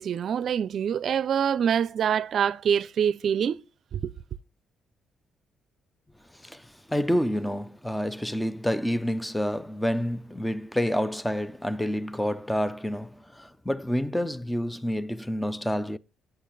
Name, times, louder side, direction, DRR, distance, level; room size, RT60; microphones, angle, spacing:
voice 1, 0.0-3.6 3.9-4.1, right 8 dB, 60° right, 0.5 m, -25 dB
voice 2, 6.4-16.0, equal, 5° left, 0.5 m, -28 dB
8.9 x 8.3 x 4.0 m
cardioid pair, 90°, 0 cm